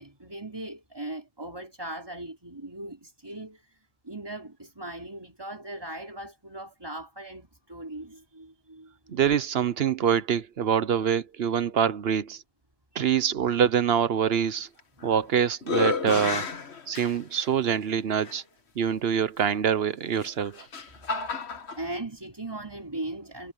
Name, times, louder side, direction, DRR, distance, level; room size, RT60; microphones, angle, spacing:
voice 1, 0.0-9.2 12.9-13.2 20.9-21.1 21.4-21.5 21.8-23.5, right 1 dB, 15° right, 3.8 m, -39 dB
voice 2, 9.1-12.4 12.9-14.7 15.0-16.5 16.9-18.4 18.8-20.7, right 8 dB, 50° right, 0.8 m, -25 dB
sound 1, 14.8-15.2 15.6-17.5 18.2-18.3 20.1-21.8, left 4 dB, 45° left, 1.6 m, -31 dB
omnidirectional pair, 1.7 m